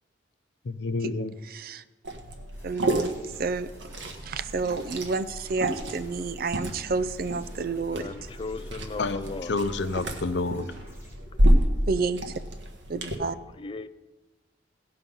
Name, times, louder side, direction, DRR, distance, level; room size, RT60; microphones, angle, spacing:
voice 1, 0.7-1.3 9.0-10.7, left 3 dB, 75° left, 11 dB, 0.6 m, -29 dB
voice 2, 1.4-1.8 2.6-3.7 4.2-8.1 11.9-12.3 12.9-13.4, right 4 dB, 55° right, 14 dB, 0.4 m, -30 dB
Liquid, 2.0-13.1, equal, 80° right, 1.3 m, -29 dB
sound 1, 2.5-11.1, equal, 15° right, 3.3 m, -52 dB
voice 3, 7.9-9.5 11.2-11.5 13.5-13.9, left 3 dB, 30° left, 12 dB, 0.4 m, -37 dB
16.5 x 5.7 x 5.4 m, 1.2 s
head